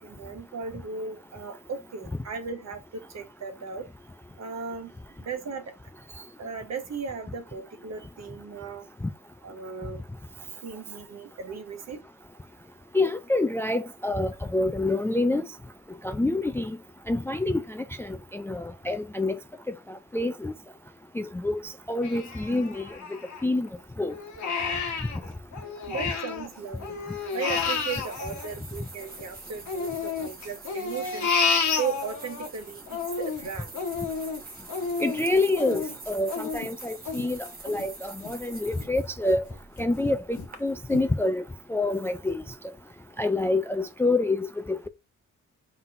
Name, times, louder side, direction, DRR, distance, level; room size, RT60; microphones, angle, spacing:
voice 1, 0.0-3.9 4.4-4.9 5.2-5.7 6.4-8.9 9.4-10.0 10.6-12.0 25.9-27.0 27.3-31.3 31.8-33.7, right 5 dB, 55° right, 1.2 m, -36 dB
voice 2, 12.9-15.4 16.0-16.8 17.1-19.4 19.7-20.5 21.2-22.9 23.4-23.7 24.0-24.1 35.0-39.4 39.8-41.4 41.7-42.4 43.2-44.9, left 2 dB, 10° left, 0.3 m, -27 dB
Crying sobbing, 22.0-23.7 24.1-26.5 26.8-29.2 29.7-32.5 32.9-38.3 38.8-38.9 39.3-39.9 40.4-40.5 40.9-41.0, left 5 dB, 65° left, 1.2 m, -31 dB
sound 1, 26.3-40.6, right 3 dB, 30° right, 1.1 m, -46 dB
4.0 x 4.0 x 2.5 m
cardioid pair, 85°, 32 cm